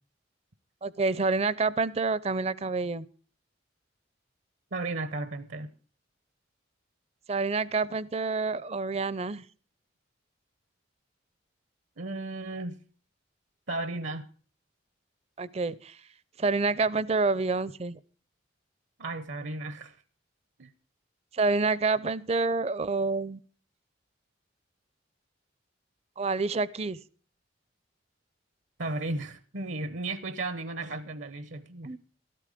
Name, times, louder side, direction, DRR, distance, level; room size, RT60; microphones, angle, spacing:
voice 1, 0.8-3.1 7.3-9.4 15.4-16.0 16.4-18.0 21.3-23.4 26.2-27.0 31.8-32.0, right 3 dB, 35° right, 20 dB, 0.5 m, -28 dB
voice 2, 4.7-5.7 12.0-12.8 13.7-14.3 19.0-19.9 20.6-20.7 28.8-31.9, right 2 dB, 70° right, 14 dB, 0.9 m, -34 dB
13.5 x 12.5 x 5.0 m, 0.40 s
head